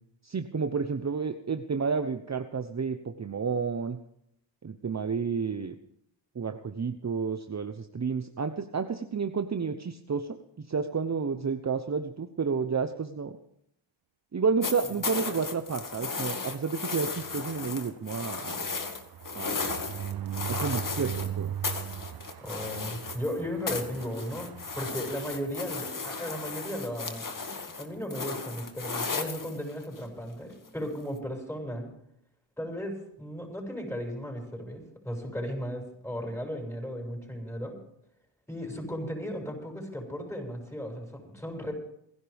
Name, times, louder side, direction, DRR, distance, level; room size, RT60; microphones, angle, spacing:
voice 1, 0.2-4.0 4.6-5.7 6.3-13.4 14.3-18.6 19.3-19.8 20.5-21.5, right 5 dB, 35° right, 7 dB, 1.0 m, -31 dB
sound 1, 14.6-21.3 21.6-23.4 23.7-30.0 31.2-31.3, left 4 dB, 45° left, 2.1 m, -35 dB
sound 2, 17.1-25.9 26.3-26.5 26.8-26.9 27.1-27.4, right 10 dB, 55° right, 0.5 m, -40 dB
voice 2, 22.4-27.2 27.8-31.9 32.6-37.8 38.5-41.7, equal, 5° left, 2 dB, 6.6 m, -36 dB
28.0 x 11.0 x 3.6 m, 0.74 s
cardioid pair, 75°, 45 cm